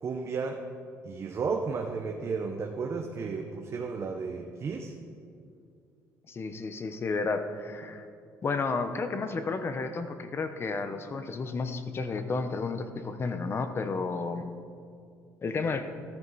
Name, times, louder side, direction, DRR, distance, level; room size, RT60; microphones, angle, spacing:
voice 1, 0.0-0.6 1.0-4.9, right 5 dB, 45° right, 2 dB, 1.0 m, -33 dB
voice 2, 6.3-8.1 8.4-14.5 15.4-15.8, left 4 dB, 40° left, 9 dB, 1.1 m, -32 dB
14.0 x 13.5 x 4.2 m, 2.4 s
cardioid pair, 90°, 7 cm